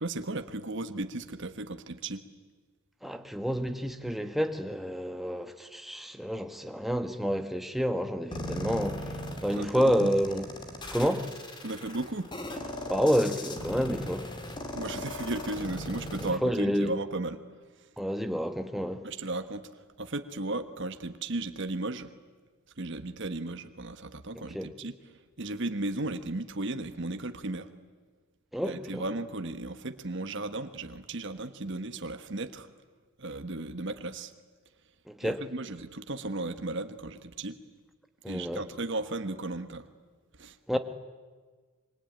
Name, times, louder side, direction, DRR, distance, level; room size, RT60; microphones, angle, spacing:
voice 1, 0.0-2.2 9.5-10.1 11.6-12.3 14.7-17.4 19.0-19.7 20.0-22.1 22.8-24.9 25.4-27.7 28.6-32.7 33.2-34.3 35.2-37.6 38.3-39.8 40.4-40.5, right 2 dB, 55° right, 1.4 m, -35 dB
voice 2, 3.0-9.1 9.4-10.5 10.9-11.3 12.9-14.3 16.2-16.9 18.0-19.1 24.3-24.7 28.5-29.0 35.1-35.4 38.2-38.6 40.7-40.8, equal, ahead, 1.3 m, -29 dB
sound 1, 8.3-16.3, left 1 dB, 20° left, 2.4 m, -38 dB
26.5 x 23.5 x 9.0 m
head